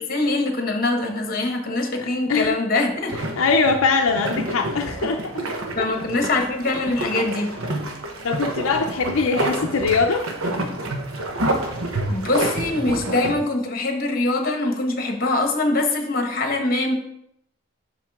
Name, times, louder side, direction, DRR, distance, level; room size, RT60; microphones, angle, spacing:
voice 1, 0.0-3.2 5.8-7.5 12.1-16.9, left 2 dB, 45° left, 3 dB, 1.2 m, -23 dB
sound 1, 3.1-13.3, right 1 dB, 85° right, 1.1 m, -28 dB
voice 2, 3.4-5.2 8.2-10.2, left 4 dB, 75° left, 3 dB, 0.5 m, -21 dB
7.4 x 6.0 x 3.6 m, 0.76 s
head